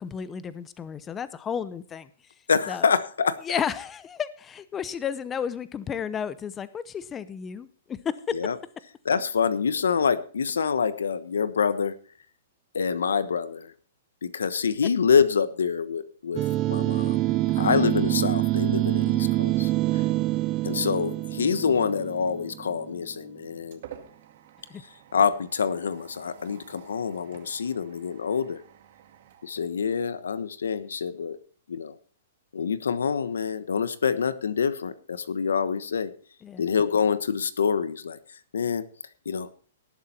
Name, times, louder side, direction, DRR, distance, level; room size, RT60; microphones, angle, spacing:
voice 1, 0.0-2.3 2.7-2.9 3.4-8.4 17.5-17.9 24.7-24.8 36.4-36.6, left 7 dB, 20° left, 15 dB, 0.7 m, -33 dB
voice 2, 2.5-3.4 8.3-8.5 9.0-11.9 12.7-13.7 14.2-17.2 17.6-20.0 20.6-23.8 25.1-28.6 29.4-31.4 31.7-32.0 32.5-36.1 36.6-38.2 38.5-38.8 39.2-39.5, left 6 dB, 90° left, 14 dB, 1.1 m, -26 dB
sound 1, 16.4-23.0, right 16 dB, 30° right, 0.5 m, -26 dB
sound 2, 23.0-30.4, right 10 dB, 60° right, 2.0 m, -50 dB
18.5 x 7.4 x 4.3 m, 0.44 s
hypercardioid pair, 135°, 0 cm